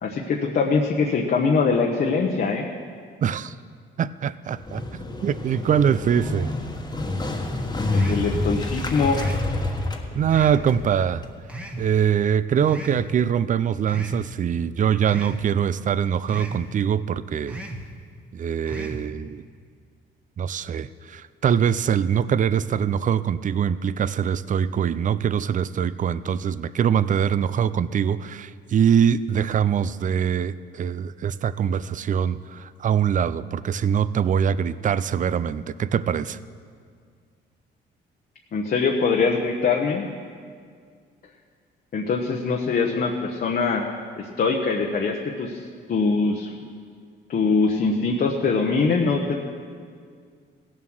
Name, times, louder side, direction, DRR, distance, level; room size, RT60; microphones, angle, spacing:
voice 1, 0.0-2.7 7.9-9.2 38.5-40.1 41.9-43.8 44.2-45.6 45.9-46.5 47.3-49.4, left 4 dB, 50° left, 1 dB, 1.0 m, -23 dB
voice 2, 3.2-3.5 4.0-4.8 5.2-6.5 10.1-11.2 11.8-17.6 18.3-19.4 20.4-36.4, right 8 dB, 40° right, 16 dB, 0.4 m, -23 dB
Motorcycle, 4.6-11.3, left 2 dB, 20° left, 1.3 m, -28 dB
sound 1, 7.9-8.3 9.1-9.5 10.3-10.7 11.5-11.9 12.7-13.0 13.9-14.2 15.1-15.4 16.3-16.6 17.5-17.8 18.7-19.0, right 1 dB, 5° right, 1.2 m, -35 dB
16.5 x 7.4 x 6.2 m, 2.1 s
cardioid pair, 90°, 20 cm